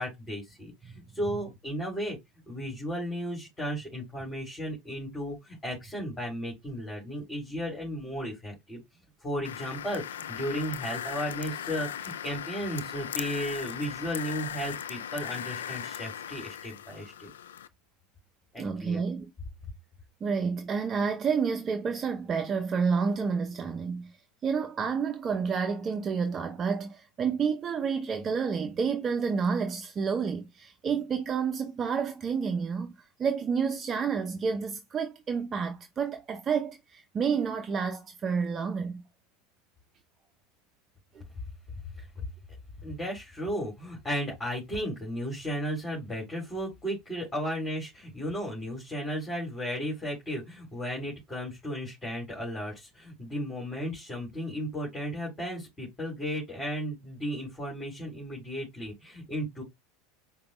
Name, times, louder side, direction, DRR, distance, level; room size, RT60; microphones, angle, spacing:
voice 1, 0.0-2.2 2.5-8.8 9.2-17.3 18.5-19.0 42.8-59.6, equal, 15° left, 2.6 m, -35 dB
sound 1, 9.4-17.7, left 9 dB, 85° left, 0.3 m, -38 dB
voice 2, 18.6-19.3 20.2-24.1 24.4-39.0, right 6 dB, 30° right, 0.6 m, -29 dB
5.0 x 2.3 x 3.0 m
hypercardioid pair, 90°, 0 cm